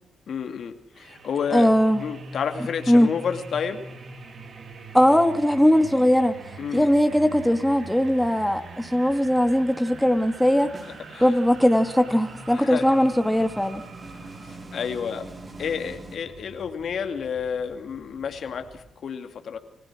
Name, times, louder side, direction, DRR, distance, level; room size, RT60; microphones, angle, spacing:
voice 1, 0.3-1.7 2.0-3.8 6.6-6.9 10.9-11.4 12.5-12.9 14.1-19.6, left 7 dB, 65° left, 7 dB, 2.4 m, -31 dB
sound 1, 1.0-18.9, right 3 dB, 55° right, 3.2 m, -43 dB
voice 2, 1.5-2.0 2.9-3.1 4.9-6.4 6.7-10.7 11.2-13.8, equal, 5° left, 7 dB, 2.4 m, -20 dB
sound 2, 10.7-16.2, right 2 dB, 35° right, 4.4 m, -45 dB
29.0 x 16.0 x 6.2 m, 0.80 s
supercardioid pair, 60°, 0 cm